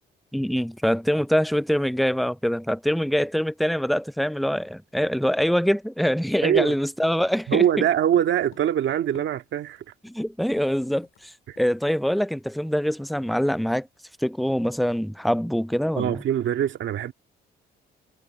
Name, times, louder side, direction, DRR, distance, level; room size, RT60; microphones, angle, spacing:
voice 1, 0.3-7.8 10.0-13.9 14.2-16.2, equal, ahead, 0.3 m, -24 dB
voice 2, 6.4-6.7 7.5-9.8 11.5-11.6 16.0-17.1, right 10 dB, 70° right, 1.9 m, -23 dB
sound 1, 7.0-9.7 9.9-10.0 10.3-11.3 11.6-11.8 12.1-12.4, left 10 dB, 70° left, 3.8 m, -54 dB
cardioid pair, 90°, 20 cm